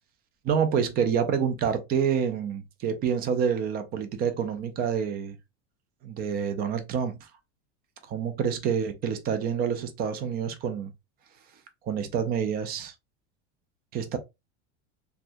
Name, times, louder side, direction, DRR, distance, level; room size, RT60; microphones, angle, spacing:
voice 1, 0.4-5.4 6.0-7.3 8.1-10.9 11.9-12.9 13.9-14.2, right 7 dB, 25° right, 0.5 m, -27 dB
3.2 x 2.3 x 2.6 m
supercardioid pair, 150°, 35 cm